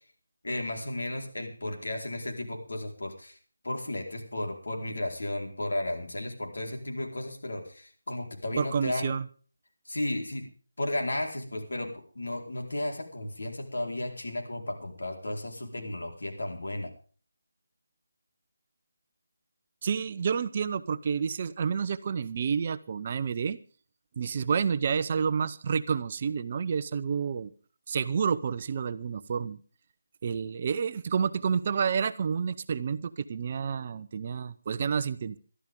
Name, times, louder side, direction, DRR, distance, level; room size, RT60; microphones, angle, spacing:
voice 1, 0.4-3.4 3.6-9.1 9.9-10.5 10.8-16.9, left 1 dB, 75° left, 2 dB, 4.5 m, -34 dB
voice 2, 8.6-9.3 19.8-23.6 24.2-27.5 27.9-29.6 30.2-35.4, right 6 dB, 35° right, 13 dB, 0.7 m, -29 dB
22.0 x 12.5 x 3.7 m, 0.41 s
figure-of-eight pair, 165°, 0 cm